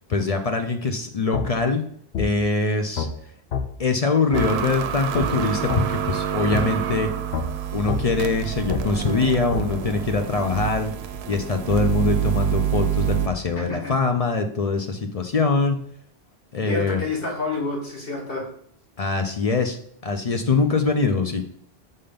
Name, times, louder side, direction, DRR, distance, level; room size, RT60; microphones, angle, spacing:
voice 1, 0.1-1.8 2.2-3.1 3.8-7.1 7.7-10.9 11.3-15.8 16.5-17.0 19.0-19.8 20.0-21.4, left 4 dB, 45° left, 6 dB, 0.5 m, -23 dB
sound 1, 1.3-1.5 2.1-2.3 3.0-3.1 3.5-3.6 4.3-4.5 5.1-5.3 5.7-5.8 6.5-6.6 7.3-7.5 7.9-8.0 8.7-8.8 9.5-9.6, left 6 dB, 80° left, 1.0 m, -25 dB
sound 2, 4.3-13.3, right 9 dB, 80° right, 0.9 m, -27 dB
voice 2, 13.6-13.9 16.7-18.5, left 3 dB, 60° left, -2 dB, 2.1 m, -28 dB
5.6 x 3.7 x 5.1 m, 0.65 s
omnidirectional pair, 1.1 m